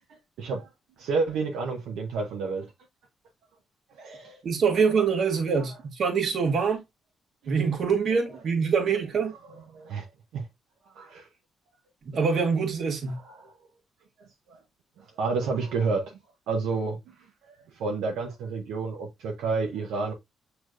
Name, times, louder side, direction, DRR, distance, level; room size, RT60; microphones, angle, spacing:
voice 1, 0.4-0.7 1.0-2.7 3.9-4.4 4.7-4.9 7.4-7.5 9.5-10.5 10.9-11.3 13.1-13.5 14.5-14.6 15.0-16.2 16.5-17.1 17.4-20.1, right 4 dB, 85° right, 0.9 m, -30 dB
voice 2, 4.4-6.8 7.5-9.3 12.1-13.2, right 5 dB, 55° right, 1.4 m, -24 dB
6.4 x 3.1 x 2.4 m
cardioid pair, 90°, 0 cm